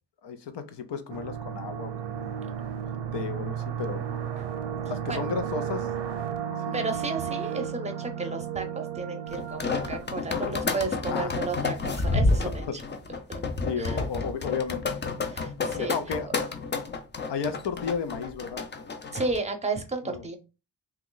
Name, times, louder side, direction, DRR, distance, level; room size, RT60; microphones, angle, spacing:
voice 1, 0.2-2.7 3.1-4.1 4.9-5.9 6.7-6.8 11.1-11.3 12.7-12.8 13.6-15.0 15.8-16.3 17.3-18.7 20.0-20.3, left 6 dB, 80° left, 0.7 m, -33 dB
sound 1, 1.1-10.9, right 9 dB, 85° right, 0.6 m, -34 dB
voice 2, 6.7-12.8 13.8-14.0 15.2-16.0 19.1-20.4, right 3 dB, 15° right, 0.6 m, -33 dB
sound 2, 9.3-19.4, left 3 dB, 25° left, 0.4 m, -30 dB
3.0 x 2.3 x 3.8 m
wide cardioid pair, 130°, 41 cm